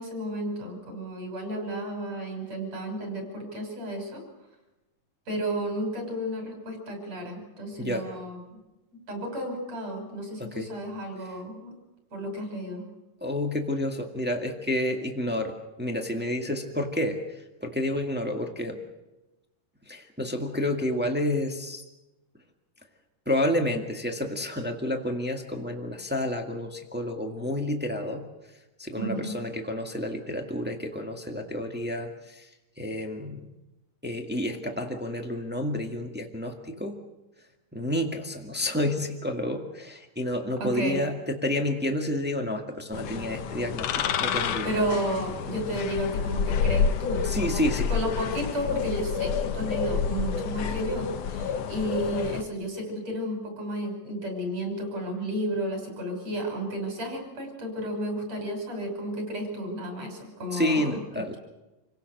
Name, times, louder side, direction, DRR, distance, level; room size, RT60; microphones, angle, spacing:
voice 1, 0.0-4.2 5.3-8.6 9.1-11.7 12.1-12.8 29.0-29.4 40.6-41.0 44.6-47.6 47.9-61.0, right 1 dB, 50° right, 2 dB, 7.3 m, -32 dB
voice 2, 10.4-10.7 13.2-18.8 19.9-21.8 23.2-28.2 28.8-32.5 32.8-33.5 34.0-37.0 37.7-44.8 47.2-47.9 60.5-61.3, left 1 dB, 15° right, 2 dB, 0.4 m, -30 dB
sound 1, 42.9-52.4, left 7 dB, 65° left, 1.6 m, -29 dB
28.0 x 17.5 x 6.6 m, 1.0 s
omnidirectional pair, 3.9 m